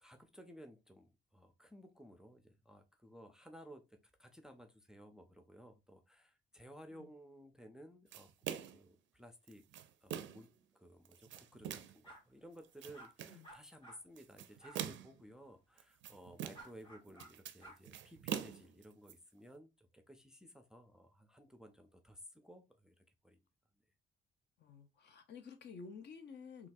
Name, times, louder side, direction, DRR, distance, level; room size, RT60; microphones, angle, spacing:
voice 1, 0.0-9.7 10.0-23.4, equal, 5° right, 0.4 m, -57 dB
sound 1, 8.1-8.9 9.5-10.5 11.1-12.0 12.6-13.4 14.2-15.2 15.8-16.8 17.1-19.1, right 9 dB, 70° right, 0.4 m, -44 dB
sound 2, 12.0-12.2 12.9-13.1 13.4-14.0 14.6-14.8 16.5-17.3 17.6-17.8, right 1 dB, 25° left, 1.5 m, -54 dB
voice 2, 24.6-26.7, left 5 dB, 60° left, 0.7 m, -52 dB
3.7 x 2.4 x 2.6 m
cardioid pair, 90°, 20 cm